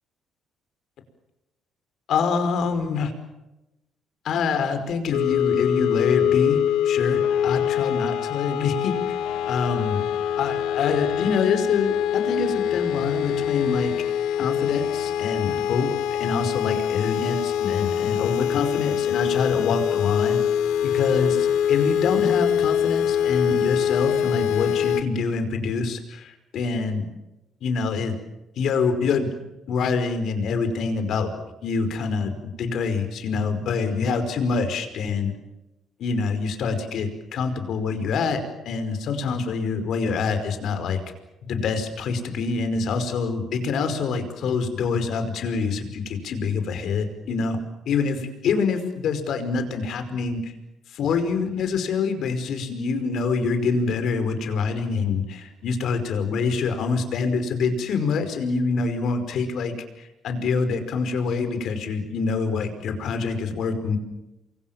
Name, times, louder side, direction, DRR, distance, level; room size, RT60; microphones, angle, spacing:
voice 1, 2.1-3.1 4.2-9.2 9.5-10.0 10.4-13.9 14.4-20.4 20.8-27.1 27.6-28.1 28.6-29.3 29.7-31.3 31.6-35.3 36.0-41.0 41.4-47.6 47.9-50.5 50.9-64.0, left 5 dB, 65° left, 8 dB, 5.1 m, -26 dB
sound 1, 5.1-25.0, left 9 dB, 85° left, 1.6 m, -24 dB
29.0 x 23.5 x 7.5 m, 0.95 s
cardioid pair, 100°, 0 cm